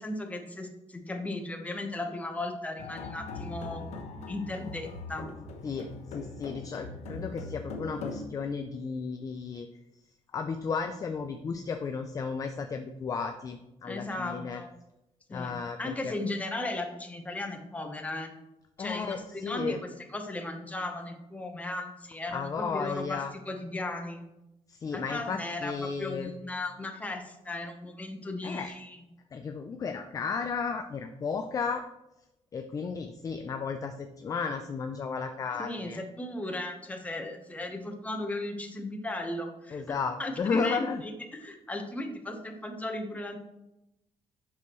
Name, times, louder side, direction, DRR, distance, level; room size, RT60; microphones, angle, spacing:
voice 1, 0.0-3.8 4.3-5.3 13.8-14.7 15.3-15.5 15.8-18.3 18.8-19.8 20.1-24.2 24.9-29.0 35.6-43.4, left 2 dB, 10° left, 3 dB, 1.0 m, -36 dB
sound 1, 2.8-8.3, left 3 dB, 70° left, 0.9 m, -41 dB
voice 2, 5.6-9.7 10.3-14.6 15.3-16.1 18.8-19.8 22.3-23.3 24.7-26.3 28.4-28.7 29.3-31.8 32.5-36.0 39.7-41.0, left 5 dB, 30° left, 6 dB, 0.4 m, -34 dB
8.5 x 6.2 x 3.1 m, 0.92 s
cardioid pair, 155°, 12 cm